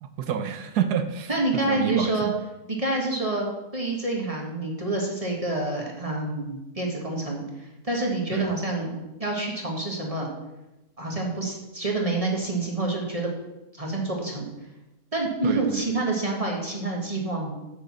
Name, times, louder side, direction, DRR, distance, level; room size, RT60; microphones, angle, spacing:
voice 1, 0.0-2.3 8.3-8.5 15.4-15.8, right 8 dB, 70° right, 9 dB, 1.2 m, -29 dB
voice 2, 1.3-2.3 2.7-3.5 3.7-8.9 9.2-10.3 11.0-13.3 13.7-14.5 15.1-17.6, right 2 dB, 20° right, -1 dB, 1.7 m, -27 dB
7.4 x 6.6 x 7.4 m, 1.0 s
omnidirectional pair, 1.9 m